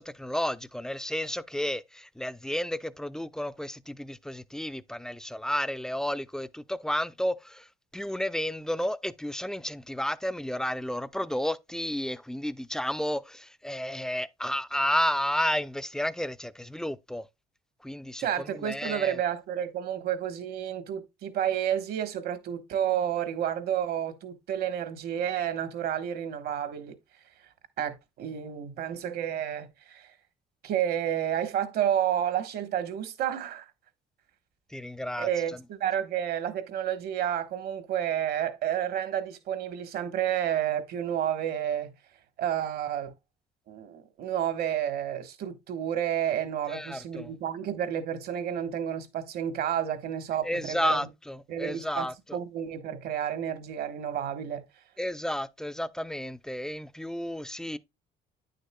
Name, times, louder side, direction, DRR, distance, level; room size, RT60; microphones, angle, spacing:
voice 1, 0.0-7.7 7.9-17.3 17.8-19.2 34.7-35.3 46.7-47.3 50.4-52.4 55.0-57.8, left 1 dB, 5° left, 0.3 m, -32 dB
voice 2, 18.2-26.9 27.8-30.2 30.6-33.6 35.2-41.9 42.4-43.1 43.7-51.0 51.5-54.6, right 10 dB, 70° right, 1.2 m, -30 dB
9.2 x 6.6 x 2.2 m
cardioid pair, 110°, 17 cm